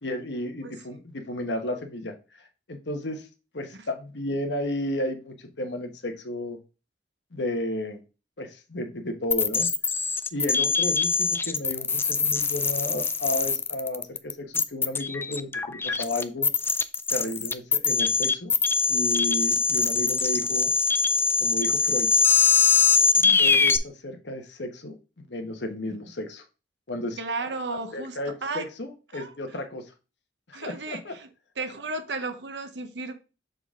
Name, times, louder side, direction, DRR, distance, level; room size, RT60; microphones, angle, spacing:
voice 1, 0.0-3.3 3.5-6.6 7.3-8.0 8.4-9.7 10.3-16.5 17.1-18.5 18.9-20.7 21.4-22.1 23.4-26.4 26.9-27.2 27.9-29.9 30.5-31.1, left 1 dB, 75° left, 1.3 m, -33 dB
voice 2, 0.6-1.0 19.2-19.3 23.1-23.4 25.9-26.0 27.2-28.7 29.1-29.3 30.5-31.3 31.6-33.1, right 3 dB, 80° right, 1.0 m, -34 dB
sound 1, 9.3-23.8, left 5 dB, 15° left, 0.4 m, -23 dB
6.8 x 3.9 x 3.7 m
head